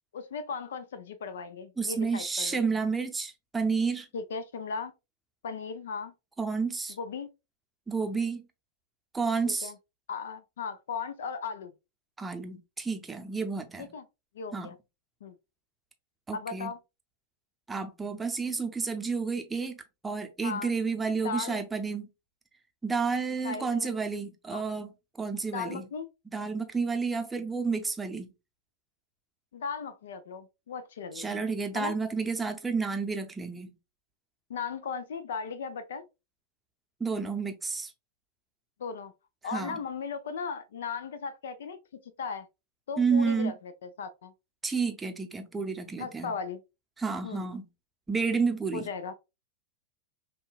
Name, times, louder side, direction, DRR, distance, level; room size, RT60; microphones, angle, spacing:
voice 1, 0.1-2.6 4.1-4.9 5.4-6.1 7.0-7.3 9.5-9.8 10.1-11.7 13.8-14.0 14.3-14.7 15.2-15.4 16.3-16.8 20.4-20.7 21.2-21.6 23.4-23.9 24.5-24.6 25.5-26.1 29.5-31.4 31.7-31.9 34.5-36.0 38.8-39.1 39.4-42.5 42.9-43.5 43.8-44.3 46.0-46.6 47.2-47.4 48.7-49.1, left 5 dB, 60° left, 0.4 m, -37 dB
voice 2, 1.8-4.1 6.4-7.0 7.9-8.4 9.1-9.7 12.2-13.9 14.5-14.7 16.3-16.7 17.7-22.1 22.8-24.9 25.2-25.9 26.3-28.3 31.1-33.7 37.0-37.9 39.5-39.8 43.0-43.5 44.6-46.3 47.0-47.6 48.1-48.9, right 5 dB, 10° right, 0.6 m, -30 dB
5.3 x 2.3 x 2.3 m
figure-of-eight pair, 90°, 0 cm